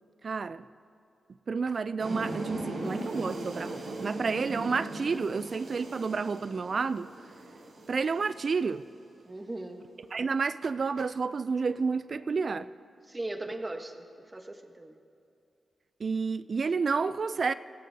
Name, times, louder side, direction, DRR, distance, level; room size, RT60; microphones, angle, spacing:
voice 1, 0.2-0.6 1.5-7.1 7.9-8.8 10.1-12.7 16.0-17.5, right 4 dB, 55° right, 14 dB, 0.3 m, -30 dB
sound 1, 2.0-8.9, right 2 dB, 80° right, 2.9 m, -38 dB
voice 2, 9.2-9.8 13.0-15.0, right 2 dB, 25° right, 5 dB, 1.2 m, -39 dB
19.5 x 16.0 x 2.8 m, 2.5 s
cardioid pair, 65°, 0 cm